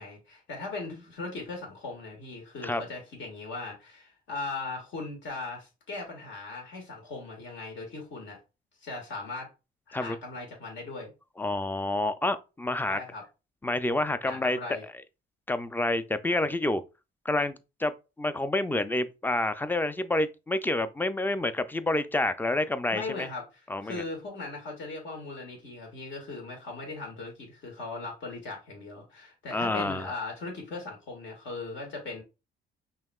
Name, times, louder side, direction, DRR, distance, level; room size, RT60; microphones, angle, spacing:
voice 1, 0.0-8.4 8.8-9.5 9.9-11.1 12.9-13.2 14.3-14.8 22.9-32.2, left 3 dB, 70° left, 1.9 m, -39 dB
voice 2, 11.4-13.0 13.6-14.6 15.5-16.8 17.3-17.9 18.2-23.3 23.7-24.0 29.5-30.1, left 2 dB, 10° left, 0.4 m, -28 dB
5.5 x 3.0 x 2.3 m
cardioid pair, 90°, 20 cm